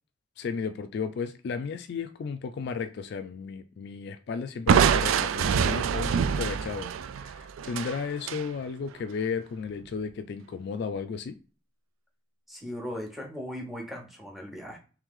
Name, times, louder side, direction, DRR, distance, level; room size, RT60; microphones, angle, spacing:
voice 1, 0.4-6.9 7.2-11.3, left 5 dB, 55° left, 0.3 m, -34 dB
Crushing, 4.7-8.5, right 7 dB, 80° right, 0.3 m, -25 dB
voice 2, 12.5-14.8, equal, ahead, 0.9 m, -38 dB
3.3 x 3.1 x 3.6 m
head